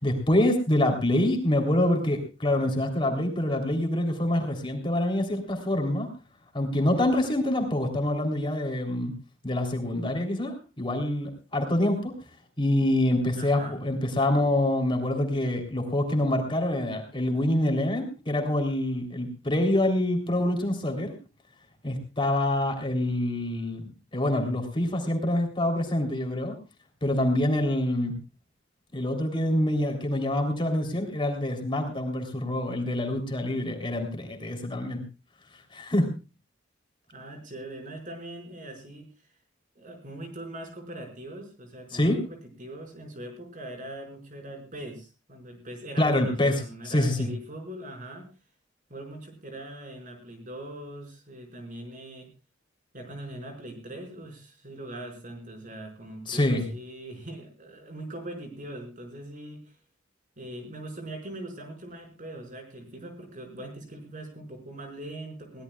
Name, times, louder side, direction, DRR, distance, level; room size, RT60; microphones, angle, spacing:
voice 1, 0.0-6.1 6.5-9.1 9.4-12.1 12.6-21.1 21.8-26.6 27.0-28.2 28.9-35.0 35.7-36.1 41.9-42.2 46.0-46.6 46.9-47.3 56.3-56.7, left 1 dB, 25° left, 3 dB, 3.4 m, -26 dB
voice 2, 13.4-13.8 37.1-39.1 39.8-48.3 48.9-52.3 52.9-59.8 60.4-65.6, right 1 dB, 45° right, 3 dB, 5.3 m, -41 dB
22.5 x 17.5 x 2.4 m, 0.31 s
head